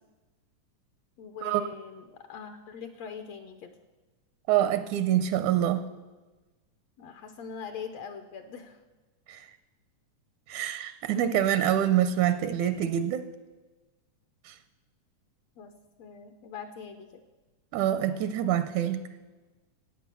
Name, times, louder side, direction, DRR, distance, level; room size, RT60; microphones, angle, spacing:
voice 1, 1.2-3.7 7.0-8.8 15.6-15.7 16.0-17.1, left 6 dB, 70° left, 7 dB, 1.7 m, -42 dB
voice 2, 4.5-5.9 9.3-9.5 10.5-13.3 14.5-14.6 17.7-19.0, right 11 dB, 80° right, 12 dB, 1.9 m, -26 dB
16.5 x 8.9 x 6.8 m, 1.2 s
omnidirectional pair, 3.6 m